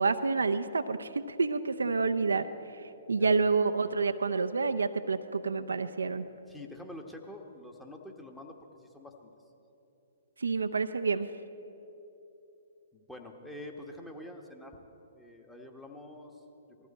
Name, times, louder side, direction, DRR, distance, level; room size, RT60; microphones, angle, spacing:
voice 1, 0.0-2.5 3.1-6.2 10.4-11.3, right 4 dB, 75° right, 8 dB, 0.6 m, -28 dB
voice 2, 3.1-3.5 6.5-9.3 12.9-14.8 15.1-16.3, left 1 dB, 5° left, 2 dB, 1.3 m, -46 dB
20.0 x 14.5 x 4.3 m, 3.0 s
figure-of-eight pair, 120°, 0 cm